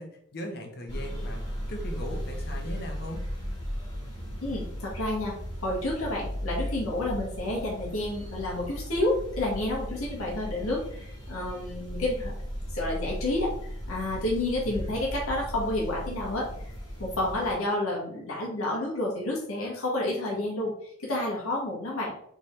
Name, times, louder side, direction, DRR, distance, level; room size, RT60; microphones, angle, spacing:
voice 1, 0.0-1.4 1.7-3.2, equal, 50° left, 2 dB, 1.0 m, -38 dB
sound 1, 0.9-17.6, equal, 20° left, 1.5 m, -36 dB
voice 2, 4.4-5.4 5.6-12.3 12.7-16.5 17.0-22.1, left 1 dB, 90° left, -3 dB, 1.5 m, -30 dB
4.1 x 3.9 x 3.2 m, 0.67 s
head